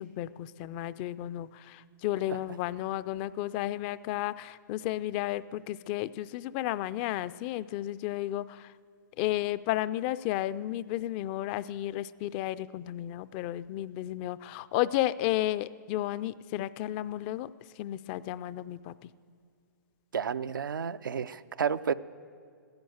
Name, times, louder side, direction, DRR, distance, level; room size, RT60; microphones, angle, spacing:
voice 1, 0.0-8.7 9.2-17.5 17.8-19.1, left 14 dB, 30° left, 17 dB, 0.3 m, -33 dB
voice 2, 20.1-21.9, right 7 dB, 90° right, 13 dB, 0.5 m, -31 dB
15.5 x 10.5 x 7.9 m, 2.2 s
hypercardioid pair, 140°, 11 cm